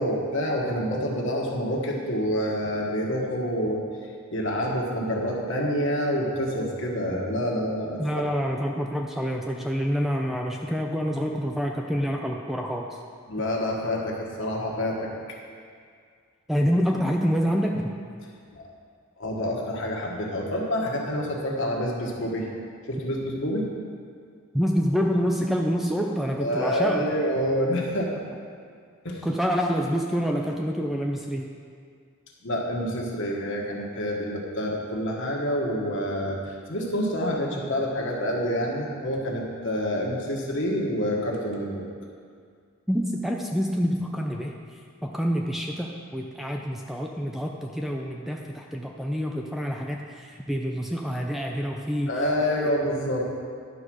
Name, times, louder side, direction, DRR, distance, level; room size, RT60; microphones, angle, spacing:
voice 1, 0.0-3.8 4.3-8.0 13.3-15.1 18.5-18.6 19.2-22.5 22.9-23.7 26.4-28.1 29.0-29.2 32.4-41.8 52.1-53.2, equal, 60° left, -1 dB, 1.5 m, -27 dB
voice 2, 8.0-12.9 16.5-18.0 24.5-27.1 29.2-31.5 42.9-44.6 45.0-52.1 52.6-52.7, equal, ahead, 1 dB, 0.4 m, -27 dB
11.0 x 4.8 x 6.3 m, 2.1 s
head